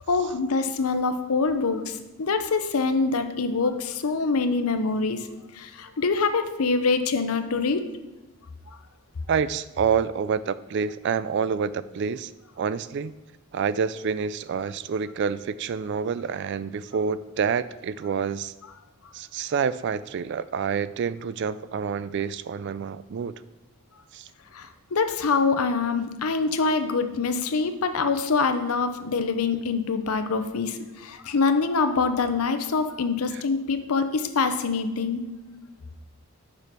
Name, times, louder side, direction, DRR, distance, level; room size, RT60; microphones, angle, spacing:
voice 1, 0.1-5.3 5.5-7.8 24.5-35.3, left 4 dB, 85° left, 9 dB, 0.7 m, -25 dB
voice 2, 9.3-12.3 12.6-13.1 13.5-18.5 19.1-23.3 24.1-24.3 33.3-33.4, right 6 dB, 55° right, 16 dB, 0.3 m, -27 dB
6.9 x 5.2 x 6.0 m, 1.1 s
head